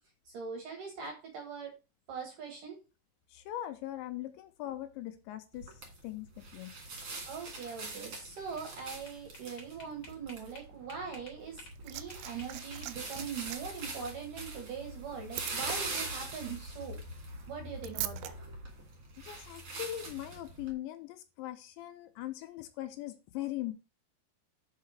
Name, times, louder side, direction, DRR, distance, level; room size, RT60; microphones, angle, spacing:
voice 1, 0.3-1.7 2.1-2.8 7.3-17.0 17.5-18.3, right 6 dB, 60° right, 2 dB, 2.4 m, -42 dB
voice 2, 3.3-6.7 19.2-23.7, left 13 dB, 85° left, 7 dB, 2.8 m, -40 dB
sound 1, 5.5-20.7, right 2 dB, 40° right, 2.4 m, -43 dB
sound 2, 8.4-11.8 12.1-13.6, left 2 dB, 40° left, 1.9 m, -53 dB
Liquid, 11.4-18.3 19.4-19.5, right 14 dB, 80° right, 2.9 m, -44 dB
5.7 x 5.6 x 6.3 m, 0.30 s
omnidirectional pair, 5.5 m